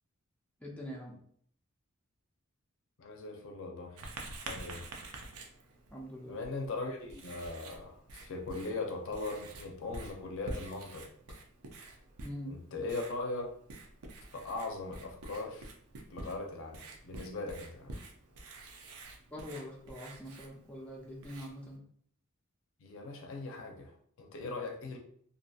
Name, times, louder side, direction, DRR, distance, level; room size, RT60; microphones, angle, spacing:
voice 1, 0.6-1.2 5.9-6.4 12.2-12.5 19.3-21.8, equal, 5° left, -3 dB, 0.4 m, -44 dB
voice 2, 3.0-4.1 4.4-4.9 6.3-11.4 12.5-13.5 14.3-15.7 16.1-18.0 22.8-25.0, left 3 dB, 60° left, 2 dB, 0.5 m, -40 dB
Writing, 4.0-21.8, right 2 dB, 85° right, 0.5 m, -48 dB
2.6 x 2.5 x 2.3 m, 0.62 s
head